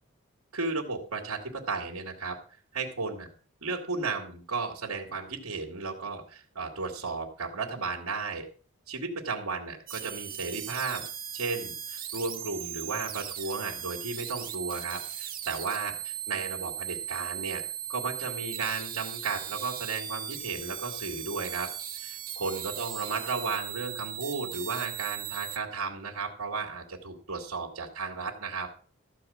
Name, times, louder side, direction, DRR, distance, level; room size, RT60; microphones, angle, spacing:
voice 1, 0.5-2.4 2.7-3.3 3.6-8.5 8.9-11.0 11.3-28.7, right 4 dB, 90° right, -3 dB, 2.3 m, -34 dB
sound 1, 9.9-25.6, right 11 dB, 40° right, 1.8 m, -38 dB
14.0 x 4.9 x 8.6 m, 0.42 s
head